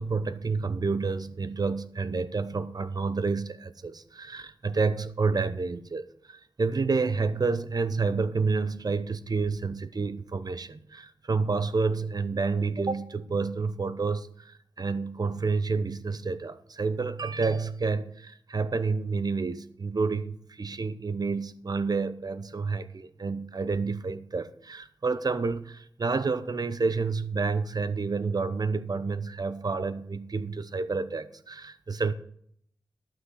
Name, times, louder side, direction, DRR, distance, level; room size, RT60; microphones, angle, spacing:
voice 1, 0.0-32.1, right 4 dB, 55° right, 0.8 m, -29 dB
12.0 x 6.1 x 6.4 m
wide cardioid pair, 65°, 8 cm